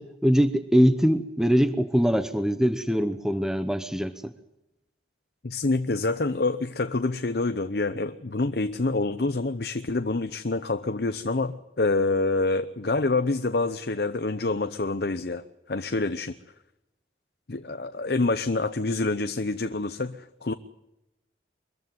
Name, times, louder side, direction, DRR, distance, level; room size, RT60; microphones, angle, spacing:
voice 1, 0.0-4.3, equal, 5° right, 10 dB, 0.8 m, -23 dB
voice 2, 5.4-16.3 17.5-20.5, left 3 dB, 60° left, 9 dB, 0.8 m, -27 dB
23.5 x 14.5 x 9.5 m, 0.91 s
head